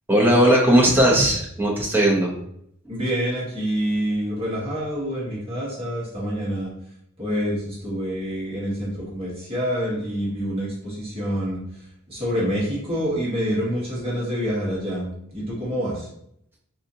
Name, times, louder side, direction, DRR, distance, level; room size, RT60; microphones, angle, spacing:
voice 1, 0.1-2.3, right 1 dB, 10° right, -3 dB, 0.9 m, -17 dB
voice 2, 2.9-6.7 7.2-11.6 12.1-16.1, equal, 25° right, -7 dB, 1.4 m, -27 dB
4.0 x 3.9 x 2.8 m, 0.73 s
head